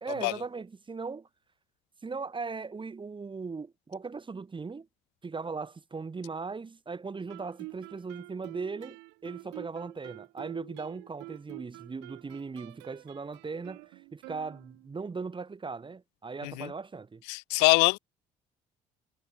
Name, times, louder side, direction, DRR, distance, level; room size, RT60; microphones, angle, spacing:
voice 1, 0.0-1.3 2.0-4.9 5.2-17.2, right 4 dB, 25° right, 1.9 m, -38 dB
Guitar, 7.3-15.0, right 26 dB, 75° right, 1.8 m, -47 dB
voice 2, 17.3-18.0, left 31 dB, 75° left, 1.2 m, -24 dB
hypercardioid pair, 60°, 18 cm